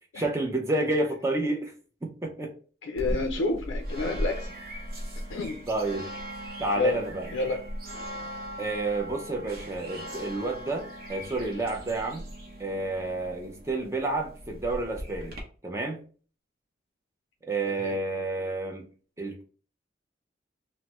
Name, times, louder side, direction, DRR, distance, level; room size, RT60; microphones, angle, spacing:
voice 1, 0.1-1.7 2.0-2.5 5.7-6.1 6.6-7.3 8.6-12.2 12.6-15.4 15.6-16.0 17.4-18.9 19.2-19.4, right 2 dB, 15° right, 0.5 m, -30 dB
voice 2, 2.8-4.5 5.2-5.6 6.7-7.0 7.3-7.6 17.6-17.9, left 3 dB, 90° left, 0.4 m, -29 dB
sound 1, 3.0-15.4, equal, 50° right, 0.8 m, -38 dB
3.2 x 2.0 x 2.9 m
head